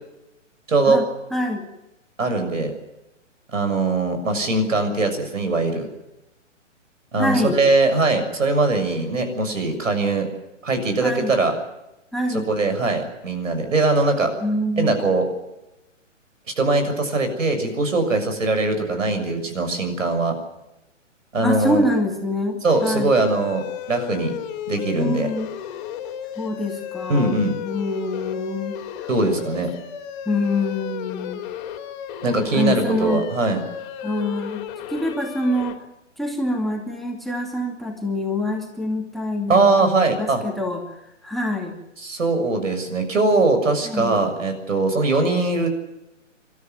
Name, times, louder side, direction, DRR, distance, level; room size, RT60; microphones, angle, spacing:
voice 1, 0.7-1.0 2.2-2.7 3.5-5.9 7.1-10.3 10.6-11.5 12.3-14.3 14.8-15.3 16.6-20.3 21.3-21.8 22.6-24.3 24.7-25.3 27.1-27.6 29.1-29.7 32.2-33.6 39.5-40.4 42.0-45.7, right 3 dB, 80° right, 7 dB, 6.8 m, -21 dB
voice 2, 1.3-1.6 7.2-7.6 11.0-11.3 12.1-12.5 14.4-15.0 21.4-23.1 24.9-25.5 26.4-27.4 27.6-29.1 30.3-31.4 32.5-33.3 34.0-34.6 34.9-35.8 36.2-40.8 41.2-41.7 43.8-44.1, left 1 dB, ahead, 2 dB, 2.5 m, -25 dB
sound 1, 22.7-35.7, left 10 dB, 35° left, 3.2 m, -34 dB
26.0 x 13.5 x 9.5 m, 0.94 s
hypercardioid pair, 140°, 38 cm